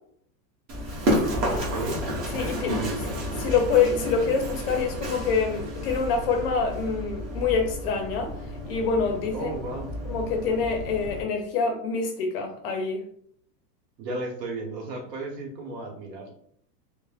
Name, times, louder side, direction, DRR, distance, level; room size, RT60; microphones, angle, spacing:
Run, 0.7-11.2, equal, 40° right, 1.0 m, -31 dB
voice 1, 1.5-2.0 2.7-3.1 9.3-9.9 14.0-16.3, right 2 dB, 80° right, 1 dB, 1.1 m, -34 dB
voice 2, 2.3-2.8 3.4-8.3 8.6-9.5 10.1-13.1, left 5 dB, 40° left, 3 dB, 0.4 m, -26 dB
3.1 x 2.1 x 2.3 m, 0.65 s
supercardioid pair, 135°, 49 cm